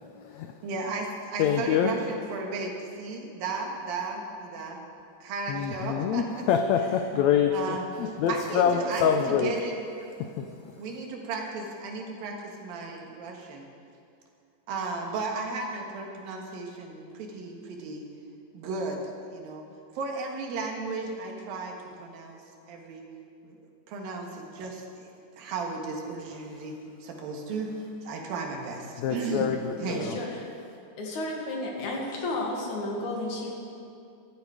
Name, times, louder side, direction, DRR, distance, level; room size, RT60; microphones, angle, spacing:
voice 1, 0.6-4.8 5.2-6.3 7.5-7.9 8.3-9.8 10.8-13.7 14.7-18.0 18.5-19.7 20.0-22.4 22.7-23.1 23.4-23.6 23.9-26.8 27.0-29.5 29.8-30.1, right 3 dB, 90° right, 1 dB, 3.3 m, -35 dB
voice 2, 1.4-1.9 5.5-9.5 10.2-10.5 29.0-29.7 30.1-30.2, left 8 dB, 90° left, 5 dB, 1.5 m, -25 dB
voice 3, 29.8-30.5 31.0-33.5, left 2 dB, 60° left, -1 dB, 3.1 m, -32 dB
15.5 x 12.5 x 4.9 m, 2.5 s
omnidirectional pair, 4.0 m